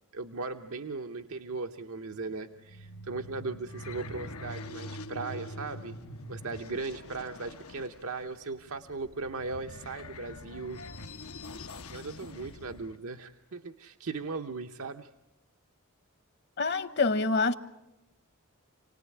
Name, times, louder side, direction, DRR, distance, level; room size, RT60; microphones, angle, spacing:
voice 1, 0.1-6.0 6.3-10.8 11.9-15.1, right 3 dB, 75° right, 0.9 m, -38 dB
sound 1, 2.5-13.0, left 1 dB, 90° left, 1.1 m, -44 dB
voice 2, 16.6-17.5, left 3 dB, 50° left, 1.0 m, -26 dB
28.5 x 19.0 x 9.7 m
head